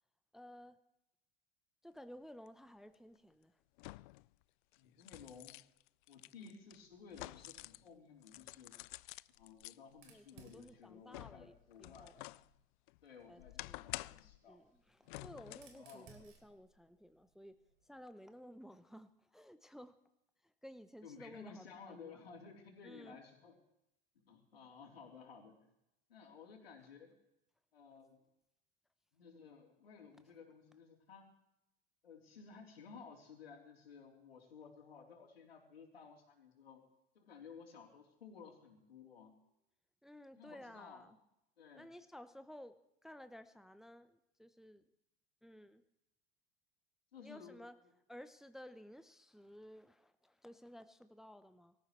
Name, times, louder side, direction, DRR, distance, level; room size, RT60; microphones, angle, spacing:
voice 1, 0.3-0.8 1.8-3.6 6.4-6.5 10.1-12.2 13.3-14.0 14.5-17.6 17.8-20.0 20.4-22.2 22.8-23.2 40.0-41.2 41.7-44.8 45.4-45.8 47.2-47.7 48.1-51.7, equal, ahead, 10 dB, 0.7 m, -55 dB
sound 1, 2.5-2.6 3.8-4.3 4.7-7.9 8.2-9.8 10.3-12.5 12.9-14.4 15.1-15.8 16.2-16.3, left 21 dB, 55° left, 0.4 m, -50 dB
voice 2, 4.8-5.6 6.1-8.8 9.3-12.2 13.0-14.6 15.7-16.1 21.0-23.6 24.2-25.6 26.1-27.1 27.7-28.2 29.1-31.3 32.0-36.8 37.1-39.3 40.3-41.1 41.6-41.9 47.1-47.6, left 6 dB, 80° left, -1 dB, 3.8 m, -56 dB
Fire, 9.9-12.6 13.8-18.0, right 5 dB, 45° right, 3.8 m, -66 dB
24.5 x 14.0 x 3.2 m, 0.83 s
hypercardioid pair, 85°, 29 cm